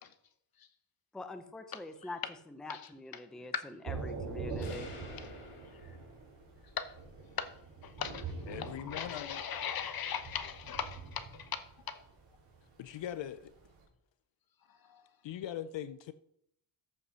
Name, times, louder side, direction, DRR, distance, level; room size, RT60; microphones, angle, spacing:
voice 1, 1.1-2.2 2.5-3.5 3.8-4.9, left 2 dB, ahead, 0.6 m, -44 dB
Thunder / Rain, 3.9-13.8, right 4 dB, 70° right, 4.3 m, -44 dB
sound 1, 4.6-6.6, left 3 dB, 85° left, 3.1 m, -50 dB
voice 2, 7.8-12.0 14.7-15.0, left 7 dB, 45° left, 1.0 m, -39 dB
voice 3, 8.5-9.4 12.8-13.5 15.2-16.1, left 11 dB, 60° left, 0.6 m, -40 dB
14.0 x 5.5 x 5.6 m
wide cardioid pair, 165°, 50 cm